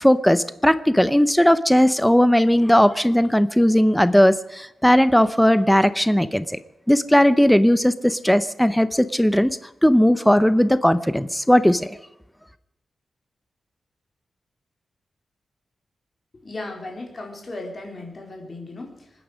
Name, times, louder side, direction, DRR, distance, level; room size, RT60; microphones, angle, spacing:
voice 1, 0.0-6.4 6.9-12.0, equal, 5° left, 13 dB, 0.7 m, -17 dB
voice 2, 16.4-19.2, left 2 dB, 30° left, 1 dB, 4.1 m, -36 dB
26.5 x 10.0 x 5.1 m, 0.87 s
wide cardioid pair, 165°, 0 cm